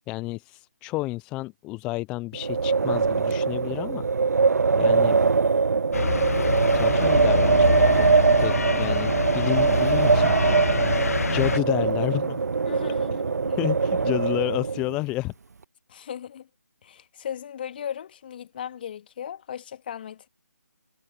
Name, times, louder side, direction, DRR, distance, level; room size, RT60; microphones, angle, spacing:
voice 1, 0.1-4.1 4.8-5.2 6.6-10.3 11.3-12.5 13.6-15.3, left 20 dB, 10° left, 0.5 m, -30 dB
Wind, 2.3-15.0, right 4 dB, 60° right, 0.6 m, -22 dB
sound 1, 5.9-11.6, left 4 dB, 55° left, 1.2 m, -27 dB
voice 2, 12.7-13.7 15.9-16.5 16.8-20.3, left 9 dB, 35° left, 2.4 m, -37 dB
figure-of-eight pair, 155°, 9 cm